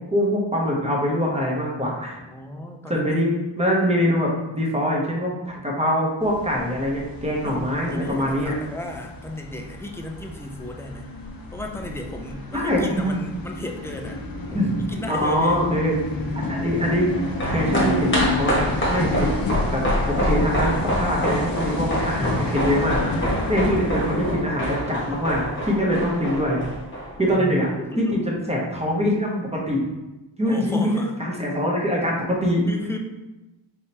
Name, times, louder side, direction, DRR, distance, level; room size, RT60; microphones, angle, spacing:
voice 1, 0.0-2.2 2.9-3.3 3.6-8.5 12.5-13.3 14.5-16.0 16.3-17.1 17.4-19.3 19.7-26.6 27.2-27.7 28.0-29.8 30.4-32.7, equal, 15° right, -3 dB, 0.8 m, -23 dB
voice 2, 2.3-3.3 7.2-7.6 7.9-11.1 11.5-14.2 14.9-15.6 27.3-28.2 30.5-31.1 32.7-33.0, left 1 dB, 5° left, 2 dB, 0.3 m, -34 dB
sound 1, 6.2-24.3, left 2 dB, 50° left, 0.6 m, -31 dB
sound 2, 17.1-27.6 27.9-28.0, equal, 25° left, 1.1 m, -26 dB
4.2 x 3.5 x 2.9 m, 1.0 s
wide cardioid pair, 135°, 44 cm